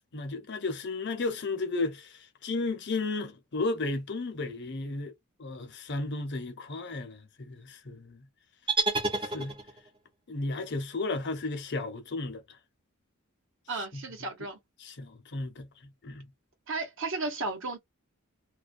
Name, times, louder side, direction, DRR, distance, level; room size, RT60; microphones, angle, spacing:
voice 1, 0.1-5.1 5.4-8.3 9.2-9.6 10.3-12.4 13.9-14.0 14.8-16.3, left 3 dB, 55° left, 0.7 m, -34 dB
sound 1, 8.7-10.0, right 3 dB, 25° right, 0.6 m, -29 dB
voice 2, 13.7-14.6 16.7-17.8, right 3 dB, 60° right, 1.0 m, -34 dB
2.3 x 2.2 x 2.5 m
head